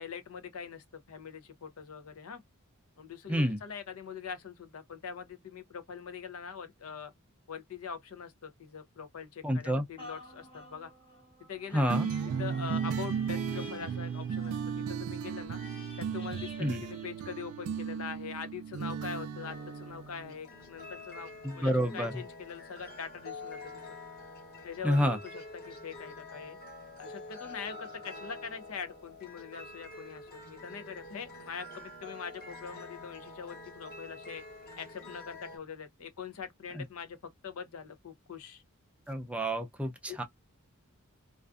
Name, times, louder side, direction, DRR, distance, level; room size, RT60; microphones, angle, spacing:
voice 1, 0.0-2.4 3.0-7.1 7.5-10.9 11.5-12.0 12.4-14.6 14.9-15.6 16.0-21.3 21.5-23.8 24.6-26.6 27.0-34.4 34.8-38.6 40.1-40.2, left 6 dB, 75° left, 0.6 m, -43 dB
voice 2, 3.3-3.6 9.4-9.8 11.7-12.1 16.6-16.8 21.4-22.1 24.8-25.2 36.7-36.8 39.1-40.2, equal, 5° right, 0.4 m, -29 dB
sound 1, 10.0-17.8 18.3-18.4, equal, 25° left, 0.8 m, -50 dB
sound 2, 11.9-20.3, right 7 dB, 80° right, 0.3 m, -35 dB
sound 3, 19.4-35.6, left 2 dB, 45° left, 1.2 m, -47 dB
2.4 x 2.4 x 2.3 m
head